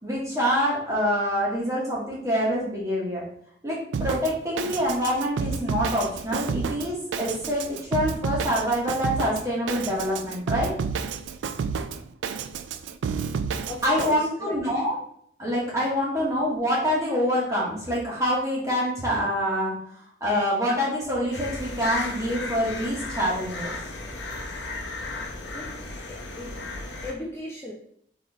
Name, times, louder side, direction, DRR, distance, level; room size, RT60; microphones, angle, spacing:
voice 1, 0.0-3.2 3.6-10.7 13.8-15.0 15.4-19.7 20.2-23.7, equal, 15° right, -6 dB, 1.7 m, -26 dB
Drum kit, 3.9-14.1, right 6 dB, 80° right, 0.3 m, -31 dB
voice 2, 13.7-14.5 25.5-25.7 26.4-26.6 27.0-27.7, left 1 dB, 15° left, -5 dB, 0.6 m, -36 dB
sound 1, 21.3-27.1, left 2 dB, 75° left, 0.8 m, -35 dB
4.0 x 3.6 x 3.5 m, 0.67 s
head